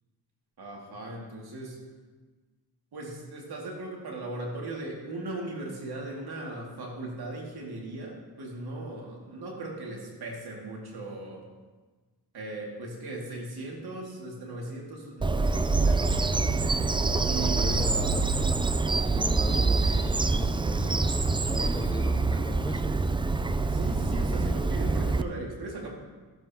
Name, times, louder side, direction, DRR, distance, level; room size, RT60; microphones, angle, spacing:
voice 1, 0.6-1.8 2.9-11.4 12.3-16.2 17.3-17.8 23.7-25.9, right 2 dB, 65° right, -1 dB, 2.5 m, -38 dB
Bird vocalization bird call bird song, 15.2-25.2, right 3 dB, 15° right, 0.4 m, -25 dB
voice 2, 17.3-18.3 18.5-18.6 19.1-21.1 21.5-22.9, left 1 dB, 10° left, 4 dB, 0.8 m, -38 dB
14.5 x 7.6 x 3.0 m, 1.3 s
cardioid pair, 60°, 41 cm